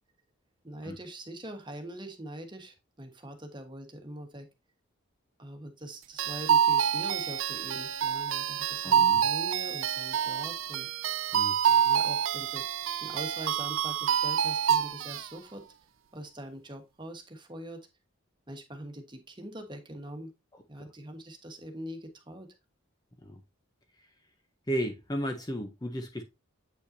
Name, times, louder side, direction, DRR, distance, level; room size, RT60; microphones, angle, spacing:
voice 1, 0.6-4.5 5.4-10.9 11.6-12.6 13.0-15.6 16.1-17.8 18.5-20.3 20.7-22.5, right 1 dB, 20° right, 1.3 m, -43 dB
sound 1, 6.2-15.3, right 9 dB, 65° right, 0.4 m, -27 dB
voice 2, 8.8-9.2 11.3-11.5 20.8-20.9 23.2-23.3 24.7-26.2, equal, 20° left, 0.7 m, -34 dB
8.4 x 5.4 x 2.7 m
head